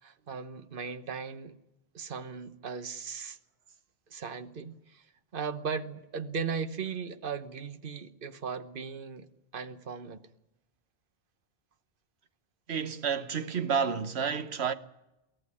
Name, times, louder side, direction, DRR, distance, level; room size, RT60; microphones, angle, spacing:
voice 1, 0.0-1.5 1.9-3.4 4.1-5.1 5.3-9.3 9.5-10.2, right 5 dB, 55° right, 1.3 m, -37 dB
voice 2, 12.7-14.7, right 6 dB, 80° right, 1.3 m, -30 dB
23.5 x 16.0 x 9.9 m
omnidirectional pair, 1.1 m